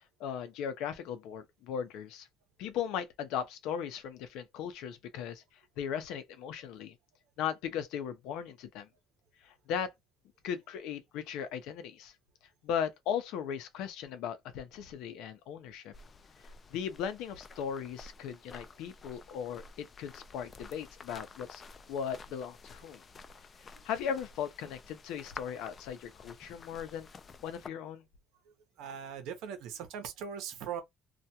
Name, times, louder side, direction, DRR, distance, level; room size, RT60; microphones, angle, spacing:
voice 1, 0.0-2.3 2.6-5.4 5.8-7.0 7.4-8.9 9.4-9.9 10.4-12.1 12.6-15.9 16.7-21.6 21.9-23.0 23.8-27.1 27.4-28.0, left 8 dB, 80° left, 0.6 m, -37 dB
sound 1, 15.9-27.7, left 4 dB, 35° left, 0.3 m, -51 dB
voice 2, 28.8-30.8, right 7 dB, 80° right, 0.8 m, -40 dB
2.3 x 2.2 x 2.8 m
cardioid pair, 110°, 0 cm